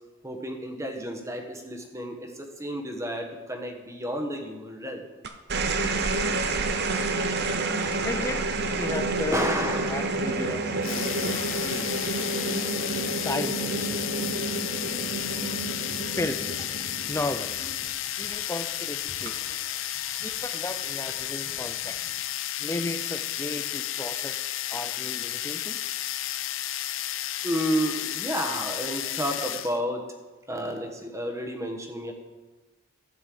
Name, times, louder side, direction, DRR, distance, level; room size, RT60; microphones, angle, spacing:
voice 1, 0.2-5.0 9.3-10.1 12.9-13.0 17.6-17.7 27.4-30.0 30.5-32.1, equal, 15° right, 4 dB, 1.2 m, -31 dB
sound 1, 5.2-17.9 19.1-19.5, right 3 dB, 55° right, 0.8 m, -29 dB
voice 2, 8.0-9.5 9.9-12.0 13.1-14.0 16.1-16.7 17.1-17.9 18.2-19.6 20.2-22.0 22.6-26.0, left 2 dB, 15° left, 8 dB, 0.4 m, -35 dB
sound 2, 10.8-29.8, left 13 dB, 65° left, 0.5 m, -32 dB
sound 3, 14.2-22.2, right 3 dB, 75° right, 1.8 m, -50 dB
12.0 x 5.5 x 7.7 m, 1.2 s
head